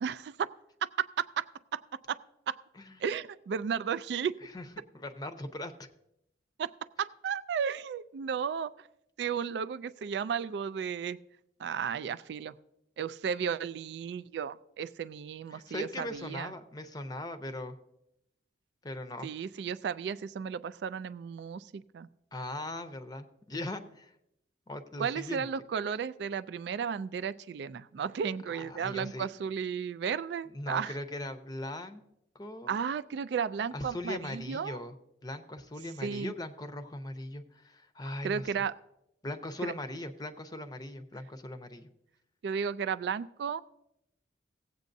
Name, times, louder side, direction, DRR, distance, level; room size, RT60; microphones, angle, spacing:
voice 1, 0.0-0.5 0.8-1.5 1.7-2.2 2.5-2.6 3.0-4.3 6.6-6.7 7.0-8.9 9.2-11.2 11.6-12.5 13.0-16.5 19.2-22.1 25.0-31.0 32.7-34.8 36.0-36.3 38.2-38.7 39.6-39.7 42.4-43.6, right 7 dB, 70° right, 15 dB, 0.3 m, -34 dB
voice 2, 4.4-5.9 15.5-17.8 18.8-19.3 22.3-24.1 24.7-25.5 28.5-29.3 30.5-32.0 32.3-32.7 33.7-34.9 35.2-38.6 39.2-41.9, left 1 dB, 20° left, 8 dB, 0.6 m, -39 dB
17.5 x 8.2 x 2.6 m, 0.80 s
head